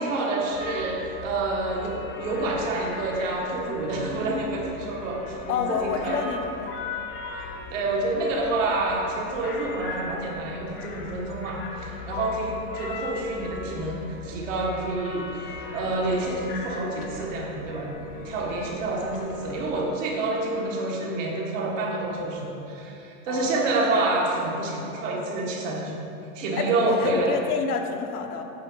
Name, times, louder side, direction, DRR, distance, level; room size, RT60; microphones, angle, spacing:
voice 1, 0.0-6.2 7.3-17.9 18.2-26.0 26.3-27.3, right 2 dB, 55° right, -2 dB, 1.5 m, -28 dB
sound 1, 0.5-19.7, left 3 dB, 35° left, 0.8 m, -39 dB
voice 2, 5.5-6.9 17.9-18.4 23.3-23.8 26.6-28.4, left 5 dB, 75° left, 4 dB, 0.9 m, -29 dB
8.8 x 6.0 x 3.7 m, 2.9 s
supercardioid pair, 170°, 46 cm